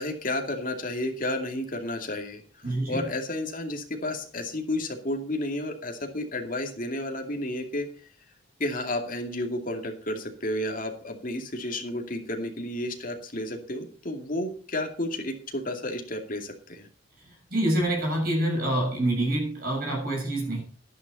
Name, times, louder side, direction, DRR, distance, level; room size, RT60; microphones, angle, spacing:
voice 1, 0.0-7.9 8.6-16.9, left 1 dB, 40° left, 3 dB, 2.4 m, -32 dB
voice 2, 2.6-3.1 17.2-20.6, right 1 dB, 45° right, -1 dB, 7.6 m, -27 dB
11.5 x 11.0 x 4.2 m, 0.42 s
head